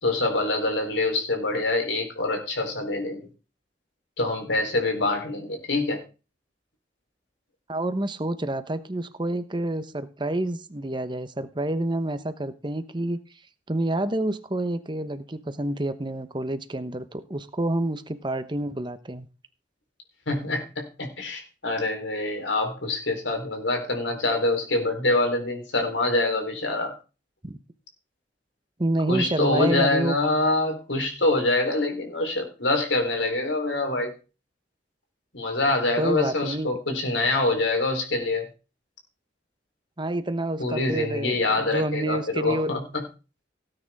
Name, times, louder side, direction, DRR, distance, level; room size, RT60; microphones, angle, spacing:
voice 1, 0.0-3.3 4.2-6.0 20.3-27.0 29.1-34.1 35.3-38.5 40.6-43.0, left 2 dB, 75° left, 4 dB, 3.7 m, -25 dB
voice 2, 7.7-13.2 13.7-19.3 27.4-27.6 28.8-30.1 36.0-36.8 40.0-42.7, right 1 dB, 25° right, 11 dB, 1.0 m, -28 dB
17.5 x 9.2 x 3.6 m, 0.32 s
head